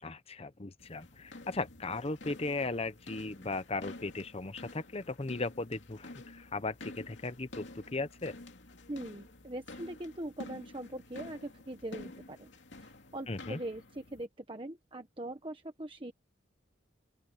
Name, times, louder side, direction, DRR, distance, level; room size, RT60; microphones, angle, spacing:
voice 1, 0.0-8.3 13.3-13.6, left 3 dB, 30° left, 0.8 m, -37 dB
sound 1, 0.8-14.3, left 2 dB, 70° left, 2.7 m, -50 dB
voice 2, 8.9-12.5 12.8-16.1, right 1 dB, 25° right, 1.3 m, -42 dB
open air
head